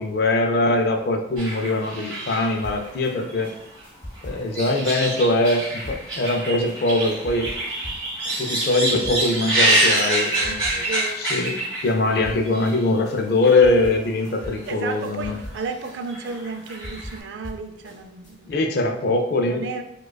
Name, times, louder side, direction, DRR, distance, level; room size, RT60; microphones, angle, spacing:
voice 1, 0.0-3.5 4.2-7.5 8.3-10.9 11.2-11.6 11.8-15.4 18.5-19.7, left 2 dB, 55° left, 4 dB, 0.4 m, -22 dB
sound 1, 1.4-3.8 4.1-12.1 12.5-12.8 13.4-13.9 14.2-14.3 15.2-15.6 15.9-17.1, right 1 dB, 25° right, 1.3 m, -26 dB
sound 2, 2.6-9.6 9.9-11.2 11.4-18.3, equal, 40° left, 0.8 m, -41 dB
voice 2, 10.4-11.2 14.7-18.6 19.5-19.8, right 4 dB, 70° right, 7 dB, 0.3 m, -33 dB
4.7 x 2.3 x 2.2 m, 0.83 s
head